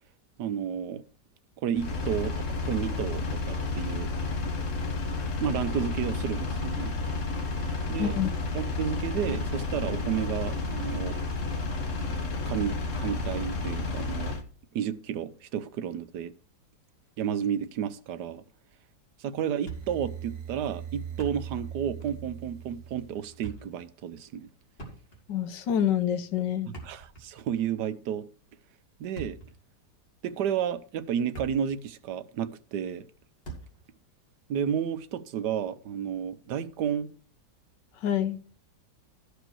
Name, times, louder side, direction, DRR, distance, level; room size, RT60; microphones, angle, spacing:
voice 1, 0.4-1.0 1.6-4.1 5.4-6.9 7.9-8.2 8.5-11.2 11.9-12.1 12.5-14.3 14.7-16.3 17.2-18.4 19.2-24.5 26.6-28.2 29.0-29.4 30.2-33.0 34.5-37.1, right 8 dB, 75° right, 1.3 m, -32 dB
Engine, 1.7-14.4, left 3 dB, 50° left, 1.5 m, -31 dB
voice 2, 8.0-8.3 25.3-26.7 38.0-38.4, left 9 dB, 85° left, 1.5 m, -27 dB
Thump thud, 19.6-20.2 20.4-20.5 21.0-21.7 22.0-22.2 23.2-23.8 24.7-25.4 26.6-27.5 28.9-29.6 30.3-30.5 31.0-31.8 32.1-32.2 33.4-33.9, right 4 dB, 35° left, 2.9 m, -43 dB
sound 1, 19.7-23.8, right 9 dB, 55° right, 1.2 m, -41 dB
13.5 x 5.0 x 6.1 m
omnidirectional pair, 1.9 m